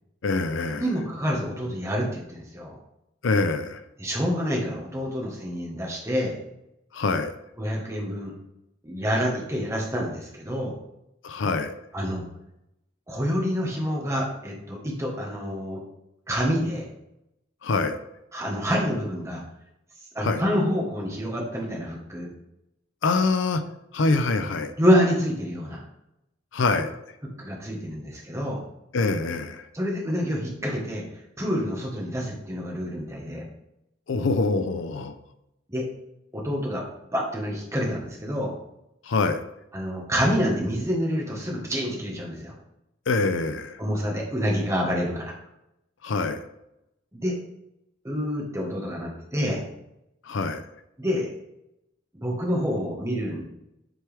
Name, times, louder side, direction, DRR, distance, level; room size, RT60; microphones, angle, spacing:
voice 1, 0.2-0.8 3.2-3.8 6.9-7.3 11.2-11.7 17.6-18.0 20.2-20.4 23.0-23.6 23.9-24.7 26.5-26.9 28.9-29.6 34.1-35.1 39.1-39.4 43.1-43.8 46.0-46.4 50.3-50.6, left 3 dB, 70° left, 10 dB, 0.5 m, -24 dB
voice 2, 0.8-2.8 4.0-6.3 7.6-8.3 8.8-10.8 11.9-12.2 13.1-15.8 16.3-16.9 18.3-19.4 20.1-22.3 24.0-24.2 24.8-25.8 27.4-28.6 29.7-31.0 31.4-33.4 35.7-35.9 36.3-36.9 37.1-38.5 39.7-42.5 43.8-45.3 47.1-47.4 48.0-49.7 51.0-51.3 52.2-53.4, equal, 15° right, -2 dB, 1.3 m, -27 dB
7.8 x 4.6 x 3.4 m, 0.86 s
head